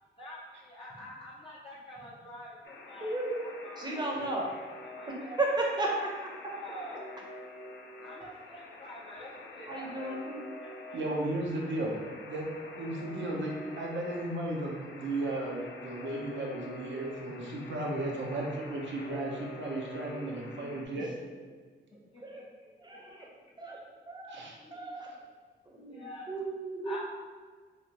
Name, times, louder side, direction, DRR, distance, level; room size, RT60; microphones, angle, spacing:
voice 1, 0.2-4.1 5.0-5.4 6.5-7.0 8.0-10.1 10.6-10.7 22.1-22.4 22.9-23.0 24.6-25.0 25.8-26.3 26.8-27.0, equal, 30° left, -7 dB, 0.5 m, -47 dB
Alarm, 2.6-20.9, left 2 dB, 75° left, 0.4 m, -47 dB
voice 2, 3.0-3.5 3.8-4.5 5.0-5.1 5.4-6.3 9.7-10.4 22.2-22.4 22.8-23.3 23.6-23.8 24.1-24.4 24.7-25.1 25.7-27.0, right 2 dB, 20° right, -2 dB, 0.7 m, -34 dB
voice 3, 10.9-12.0 12.3-12.5 12.8-21.1 24.3-24.6, right 1 dB, 70° right, -1 dB, 0.7 m, -35 dB
3.3 x 2.5 x 2.8 m, 1.5 s
cardioid pair, 80°, 20 cm